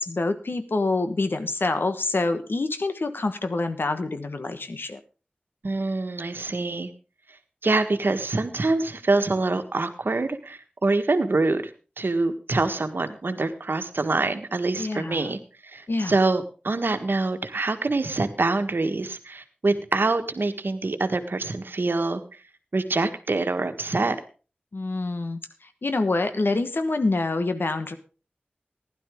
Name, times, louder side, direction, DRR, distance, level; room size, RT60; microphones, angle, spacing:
voice 1, 0.0-5.0 14.8-15.3 15.9-16.2 24.7-28.0, left 3 dB, 75° left, 9 dB, 1.3 m, -26 dB
voice 2, 5.6-6.9 7.6-11.6 12.0-15.4 15.7-22.2 22.7-24.2, right 3 dB, 75° right, 8 dB, 1.4 m, -25 dB
15.5 x 11.5 x 3.6 m, 0.35 s
wide cardioid pair, 45°, 4 cm